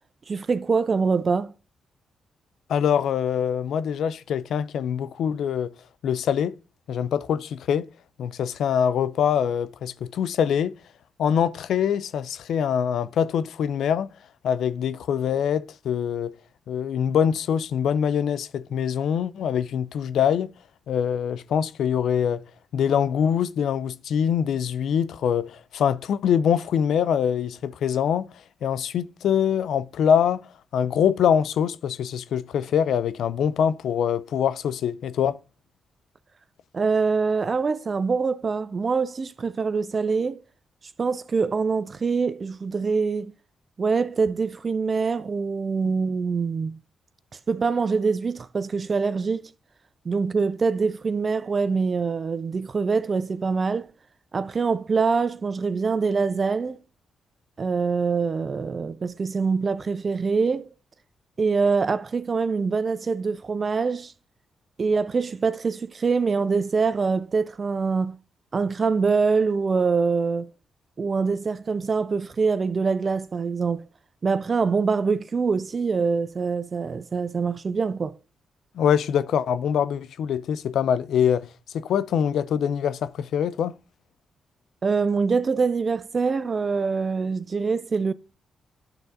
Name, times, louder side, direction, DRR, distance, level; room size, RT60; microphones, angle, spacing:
voice 1, 0.3-1.5 36.7-40.4 41.0-43.3 43.8-46.8 47.5-49.5 50.0-53.9 54.3-56.8 57.6-60.7 61.4-64.1 64.8-68.2 68.5-70.5 71.0-73.8 74.2-78.2 84.8-88.1, right 4 dB, 45° right, 0.5 m, -24 dB
voice 2, 2.7-5.7 6.0-6.6 6.9-7.9 8.2-10.8 11.2-14.1 14.4-16.3 16.7-20.5 20.9-22.4 22.7-28.3 28.6-30.5 30.7-35.4 78.7-81.5 81.7-83.8, left 8 dB, 75° left, 0.3 m, -24 dB
11.5 x 3.9 x 2.5 m
supercardioid pair, 50°, 0 cm